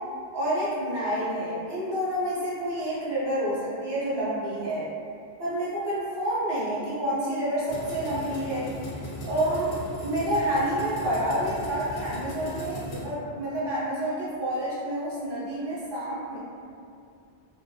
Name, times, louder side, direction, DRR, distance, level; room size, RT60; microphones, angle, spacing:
voice 1, 0.3-4.9 5.4-8.7 9.2-9.8 10.0-16.4, right 1 dB, 30° right, -9 dB, 0.6 m, -28 dB
sound 1, 7.7-13.0, equal, 75° left, 0.8 m, -38 dB
2.3 x 2.1 x 2.6 m, 2.4 s
omnidirectional pair, 1.1 m